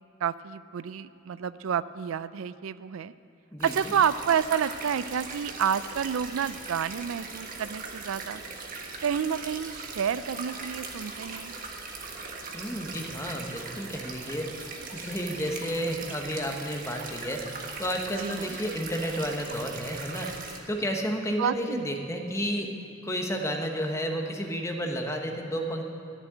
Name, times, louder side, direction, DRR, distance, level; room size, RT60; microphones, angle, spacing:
voice 1, 0.2-3.1 3.6-8.4 9.0-11.5 18.2-18.6 21.4-21.9, right 8 dB, 90° right, 16 dB, 0.4 m, -29 dB
voice 2, 3.5-3.9 12.5-14.5 14.9-17.5 17.8-22.7 23.0-25.8, equal, 15° left, 3 dB, 1.1 m, -31 dB
sound 1, 3.6-20.6, right 4 dB, 45° right, 1.4 m, -40 dB
13.5 x 7.4 x 9.1 m, 2.5 s
head